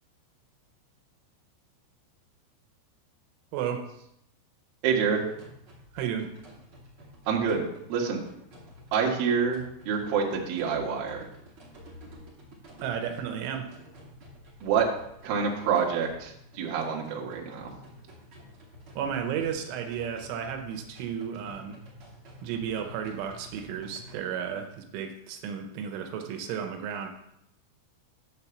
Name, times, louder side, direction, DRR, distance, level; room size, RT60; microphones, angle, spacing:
voice 1, 3.5-3.8 5.9-6.3 12.8-13.7 19.0-21.8 22.4-27.1, right 8 dB, 85° right, 4 dB, 3.3 m, -33 dB
voice 2, 4.8-5.2 7.3-8.2 8.9-11.3 14.6-14.9 15.2-17.7, right 6 dB, 60° right, -1 dB, 2.9 m, -27 dB
sound 1, 4.9-24.1, equal, 35° right, 2.4 m, -50 dB
11.0 x 4.5 x 7.1 m, 0.78 s
omnidirectional pair, 5.4 m